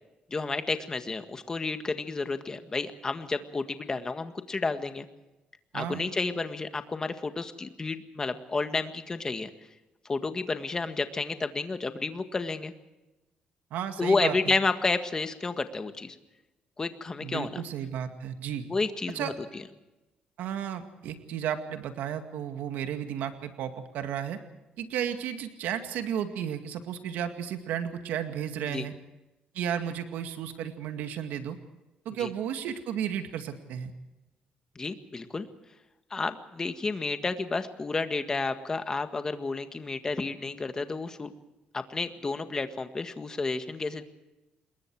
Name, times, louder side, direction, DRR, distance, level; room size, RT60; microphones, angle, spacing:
voice 1, 0.3-5.1 5.7-9.5 10.1-12.7 14.0-16.2 16.8-17.6 18.7-19.6 28.7-28.9 32.2-32.3 34.8-35.5 36.1-41.3 41.7-44.0, left 3 dB, 20° left, 8 dB, 1.7 m, -31 dB
voice 2, 5.7-6.1 13.7-14.6 17.2-18.7 19.1-19.3 20.4-24.4 24.8-28.9 29.5-31.6 32.1-33.9, right 9 dB, 85° right, 7 dB, 2.1 m, -33 dB
27.0 x 21.5 x 4.8 m, 1.0 s
cardioid pair, 135°, 3 cm